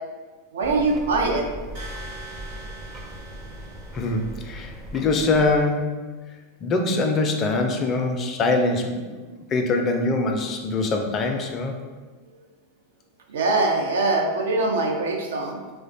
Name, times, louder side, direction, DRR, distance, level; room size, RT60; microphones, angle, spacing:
voice 1, 0.5-1.4 13.3-15.6, right 3 dB, 80° right, 2 dB, 0.4 m, -22 dB
sound 1, 0.6-5.7, right 1 dB, 25° right, 0.5 m, -39 dB
sound 2, 1.7-4.7, right 2 dB, 65° right, 1.0 m, -42 dB
voice 2, 3.9-6.0 6.6-11.7, left 3 dB, 35° left, 4 dB, 0.4 m, -23 dB
3.0 x 2.1 x 2.6 m, 1.4 s
hypercardioid pair, 100°, 0 cm